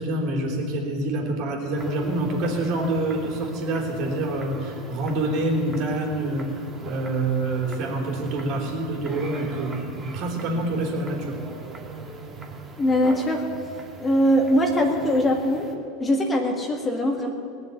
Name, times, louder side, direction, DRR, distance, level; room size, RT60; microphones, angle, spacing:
voice 1, 0.0-11.4, right 2 dB, 55° right, 0 dB, 3.5 m, -27 dB
sound 1, 1.8-15.8, right 4 dB, 25° right, 2.3 m, -39 dB
voice 2, 12.8-13.5 14.0-15.7 16.0-17.3, equal, 25° left, 1 dB, 1.9 m, -21 dB
19.0 x 6.8 x 9.8 m, 2.5 s
hypercardioid pair, 85°, 0 cm